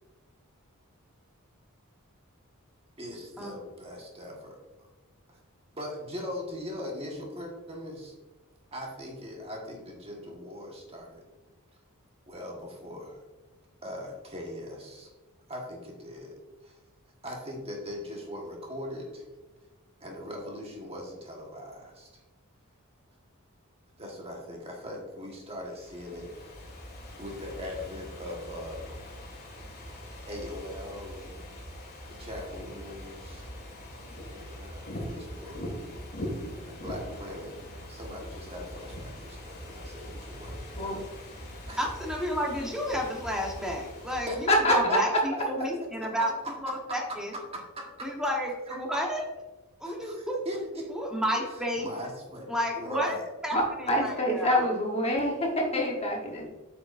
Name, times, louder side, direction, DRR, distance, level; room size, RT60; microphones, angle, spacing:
voice 1, 3.0-4.9 5.7-8.1 8.7-11.2 12.3-13.2 13.8-15.1 15.5-16.3 16.6-16.7 17.2-19.2 20.0-22.1 24.0-26.3 27.2-28.9 30.3-31.4 32.2-33.5 34.3-35.8 36.6-37.5 37.9-41.0 41.7-41.8 44.1-45.4 46.0-46.3 46.9-47.2 47.5-48.1 48.7-48.8 49.8-50.9 51.5-53.2, equal, 30° right, -1 dB, 1.4 m, -40 dB
Ocean / Fireworks, 25.5-44.8, equal, 45° left, 1.9 m, -42 dB
voice 2, 41.8-47.3 48.0-49.2 49.8-50.4 50.9-51.9 52.5-54.7, equal, 5° right, -1 dB, 1.2 m, -31 dB
voice 3, 44.5-45.0 53.5-56.5, left 1 dB, 30° left, 0 dB, 1.2 m, -26 dB
8.4 x 5.9 x 2.6 m, 1.1 s
head